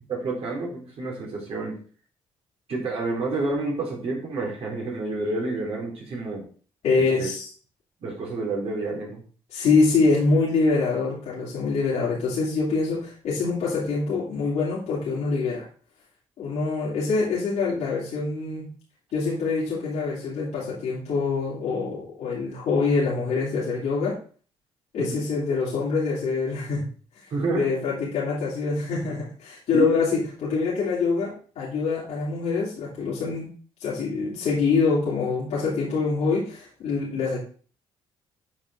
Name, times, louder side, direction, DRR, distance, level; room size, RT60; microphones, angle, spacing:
voice 1, 0.1-1.8 2.7-6.5 6.9-7.3 8.0-9.2 25.0-25.2 27.3-27.7 29.7-29.9, right 3 dB, 55° right, -3 dB, 3.8 m, -29 dB
voice 2, 6.8-7.5 9.5-15.7 16.4-18.7 19.1-24.2 24.9-26.9 27.5-33.5 33.8-37.4, left 4 dB, 75° left, -6 dB, 3.0 m, -25 dB
8.6 x 4.9 x 3.7 m, 0.41 s
supercardioid pair, 70°, 12 cm